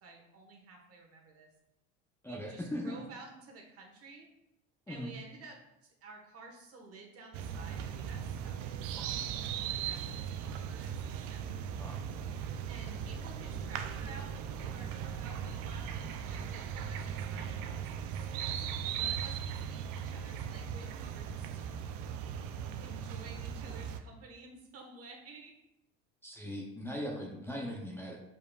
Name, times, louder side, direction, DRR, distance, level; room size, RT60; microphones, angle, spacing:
voice 1, 0.0-1.5 2.3-4.3 4.9-9.3 9.5-11.6 12.7-18.5 18.9-21.6 22.8-25.5, right 3 dB, 50° right, 1 dB, 1.3 m, -52 dB
voice 2, 2.2-3.0 4.9-5.2 9.0-9.3 11.8-12.0 26.2-28.2, equal, 10° left, -2 dB, 0.6 m, -40 dB
sound 1, 7.3-24.0, right 8 dB, 75° right, 0.5 m, -38 dB
5.0 x 4.6 x 2.3 m, 0.87 s
supercardioid pair, 105°, 31 cm